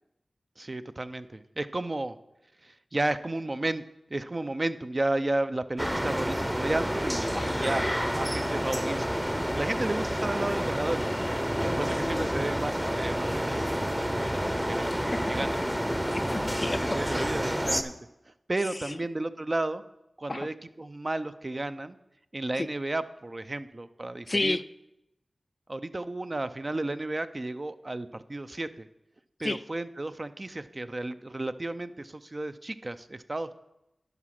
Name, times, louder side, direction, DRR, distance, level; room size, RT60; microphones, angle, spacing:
voice 1, 0.6-2.2 2.6-3.8 4.1-11.2 11.8-14.4 14.7-15.0 15.3-15.6 16.9-17.9 18.3-19.8 20.2-22.0 22.3-24.6 25.7-28.9 29.4-33.6, right 2 dB, 40° right, 11 dB, 0.5 m, -33 dB
sound 1, 5.8-17.8, equal, 5° right, 0.7 m, -29 dB
voice 2, 11.9-12.3 15.1-15.2 15.9-17.3 17.7-17.8 18.7-19.0 20.3-20.5 22.6-22.7 24.3-24.6 29.4-29.6, left 2 dB, 40° left, 14 dB, 0.3 m, -32 dB
11.0 x 5.1 x 5.8 m, 0.89 s
cardioid pair, 50°, 0 cm